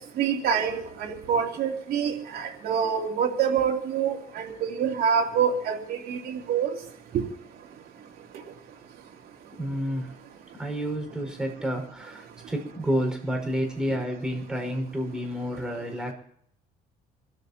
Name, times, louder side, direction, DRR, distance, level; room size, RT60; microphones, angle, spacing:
voice 1, 0.2-6.7 7.1-7.2, right 7 dB, 65° right, 2.9 m, -26 dB
voice 2, 9.6-10.1 10.5-16.1, equal, 5° right, 5.1 m, -30 dB
27.5 x 14.0 x 2.9 m
cardioid pair, 110°, 17 cm